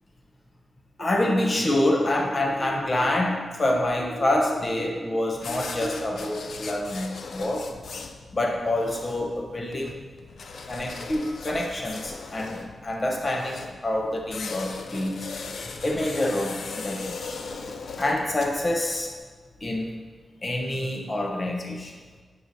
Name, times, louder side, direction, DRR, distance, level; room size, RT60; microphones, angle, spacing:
voice 1, 1.0-7.7 8.3-10.0 10.7-15.3 15.8-17.2 18.0-19.1 19.6-19.9 20.4-21.9, left 1 dB, 35° left, 1 dB, 0.9 m, -26 dB
sound 1, 1.0-6.0, right 1 dB, 80° right, 0.9 m, -40 dB
sound 2, 5.3-19.2, left 4 dB, 70° left, 0.5 m, -39 dB
9.2 x 4.9 x 2.7 m, 1.4 s
wide cardioid pair, 95°, 0 cm